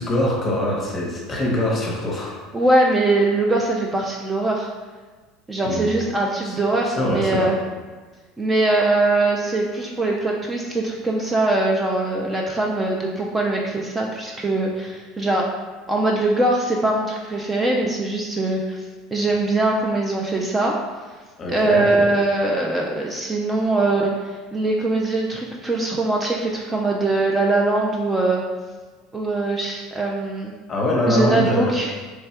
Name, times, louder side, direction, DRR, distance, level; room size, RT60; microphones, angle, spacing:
voice 1, 0.0-2.4 5.6-5.9 6.4-6.6 6.9-7.6 21.4-22.1 30.7-31.8, left 1 dB, 25° left, -1 dB, 0.8 m, -23 dB
voice 2, 2.5-4.7 5.5-7.6 8.4-15.5 15.9-18.8 19.1-20.7 21.5-28.4 29.1-30.5 31.0-31.9, right 2 dB, 15° right, -1 dB, 0.4 m, -22 dB
3.3 x 2.2 x 4.2 m, 1.3 s
supercardioid pair, 120°, 0 cm